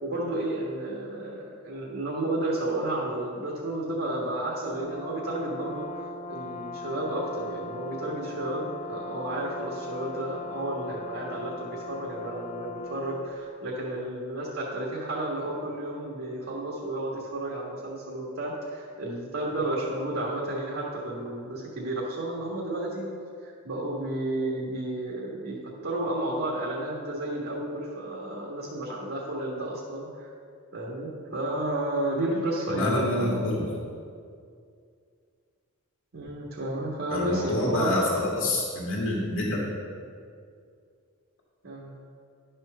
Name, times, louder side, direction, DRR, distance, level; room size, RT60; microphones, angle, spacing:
voice 1, 0.0-5.9 6.3-23.1 23.4-30.3 30.7-33.5 36.1-37.9 41.6-41.9, right 1 dB, 60° right, -4 dB, 1.4 m, -32 dB
Brass instrument, 4.7-13.4, left 3 dB, 30° left, 0.5 m, -39 dB
voice 2, 32.7-33.7 37.1-39.7, left 1 dB, 65° left, -4 dB, 1.3 m, -27 dB
10.5 x 4.5 x 6.4 m, 2.3 s
head